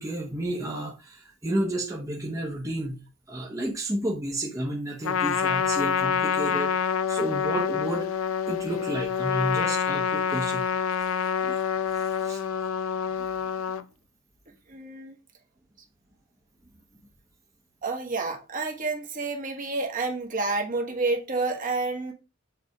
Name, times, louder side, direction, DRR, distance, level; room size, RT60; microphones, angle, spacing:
voice 1, 0.0-3.0 3.3-6.7 7.1-8.1 8.5-10.7 11.4-11.6 12.0-12.4, right 1 dB, 15° right, 1.0 m, -31 dB
Trumpet, 5.0-13.8, left 7 dB, 80° left, 0.5 m, -27 dB
voice 2, 14.7-15.1 17.8-22.1, right 3 dB, 40° right, 1.4 m, -29 dB
6.8 x 3.4 x 4.7 m
head